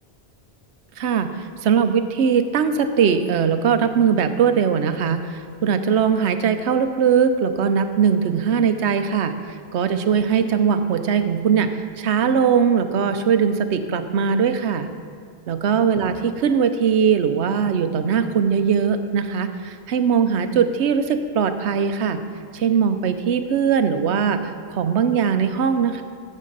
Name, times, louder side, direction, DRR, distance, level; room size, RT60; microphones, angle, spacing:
voice 1, 1.0-9.3 9.7-11.7 12.0-14.9 15.5-22.2 22.5-26.0, right 7 dB, 85° right, 9 dB, 1.0 m, -20 dB
14.0 x 7.5 x 4.0 m, 2.2 s
omnidirectional pair, 1.1 m